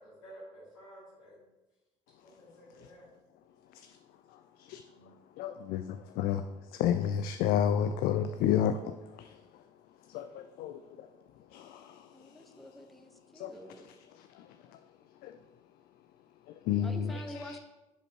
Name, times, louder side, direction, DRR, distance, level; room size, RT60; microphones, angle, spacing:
voice 1, 0.0-1.4 2.2-3.1 4.9-5.1, right 1 dB, 85° left, 2.3 m, -52 dB
voice 2, 5.4-6.4 6.7-9.4 10.1-11.1 11.5-12.1 13.4-13.5 13.8-14.5 15.2-15.4 16.7-17.6, left 9 dB, 65° left, 0.4 m, -31 dB
voice 3, 12.1-13.9 16.8-17.6, equal, ahead, 1.1 m, -46 dB
10.5 x 5.1 x 3.0 m
hypercardioid pair, 50°, 17 cm